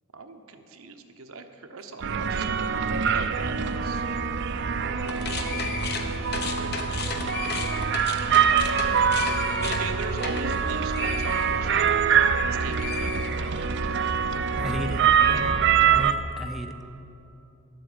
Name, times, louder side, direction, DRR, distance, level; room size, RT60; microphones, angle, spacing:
voice 1, 0.1-4.0 4.8-5.6 6.5-7.0 9.6-12.0 12.4-13.7, right 4 dB, 80° right, 6 dB, 1.0 m, -41 dB
sound 1, 2.0-16.1, right 7 dB, 55° right, 0.5 m, -24 dB
sound 2, 5.0-12.4 12.7-13.9, left 4 dB, 50° left, 1.0 m, -35 dB
voice 2, 14.6-16.8, equal, ahead, 4 dB, 0.6 m, -35 dB
12.0 x 8.0 x 8.0 m, 2.8 s
head